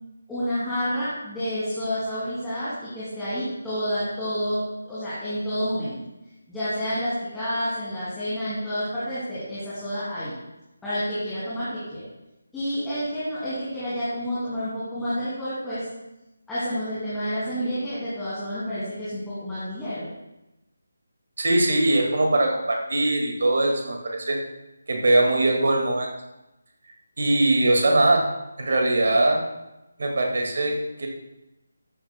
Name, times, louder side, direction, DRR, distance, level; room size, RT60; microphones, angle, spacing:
voice 1, 0.3-6.0 6.5-10.3 10.8-12.0 12.5-15.8 16.5-20.1, equal, 5° left, -14 dB, 2.6 m, -29 dB
voice 2, 21.4-24.4 24.9-26.1 27.2-28.2 28.6-29.4 30.0-31.1, right 2 dB, 50° right, 1 dB, 2.1 m, -21 dB
13.5 x 10.5 x 2.3 m, 0.95 s
figure-of-eight pair, 155°, 0 cm